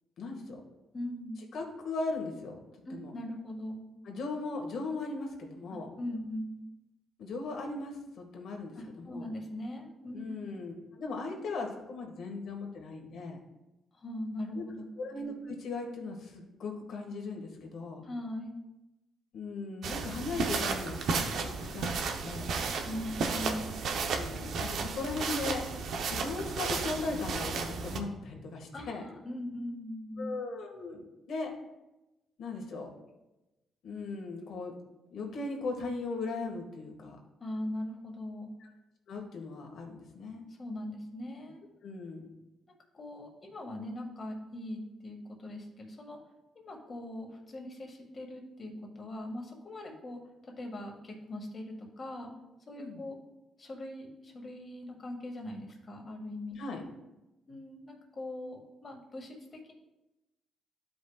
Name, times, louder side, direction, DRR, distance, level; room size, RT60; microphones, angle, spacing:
voice 1, 0.2-0.6 1.5-2.6 2.9-3.1 4.0-5.9 7.2-9.3 10.1-13.4 14.5-14.7 15.0-18.0 19.3-22.5 24.1-25.7 26.1-29.1 30.2-31.5 32.4-32.9 33.8-34.7 35.1-37.2 39.1-40.4 41.8-42.3 52.8-53.0 56.6-56.8, left 3 dB, 65° left, 2 dB, 1.7 m, -38 dB
voice 2, 0.9-1.4 2.9-4.0 6.0-6.6 8.8-10.3 13.9-15.0 18.0-18.6 22.9-23.8 28.7-30.3 37.4-38.5 40.5-41.6 42.9-46.2 46.6-52.3 52.7-53.2 53.6-56.6 57.5-59.7, left 1 dB, 35° left, 1 dB, 1.9 m, -40 dB
sound 1, 19.8-28.0, right 4 dB, 70° right, 0.8 m, -33 dB
12.5 x 5.2 x 2.4 m, 1.0 s
cardioid pair, 90°, 0 cm